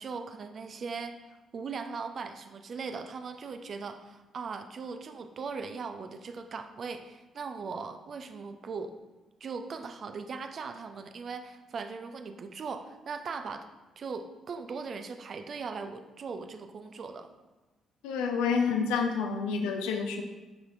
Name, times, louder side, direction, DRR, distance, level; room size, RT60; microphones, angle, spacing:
voice 1, 0.0-9.0 9.4-13.7 14.0-17.3, right 5 dB, 45° right, 8 dB, 0.5 m, -39 dB
voice 2, 18.0-20.2, left 5 dB, 70° left, 4 dB, 0.6 m, -28 dB
9.7 x 5.6 x 2.6 m, 1.1 s
figure-of-eight pair, 40°, 0 cm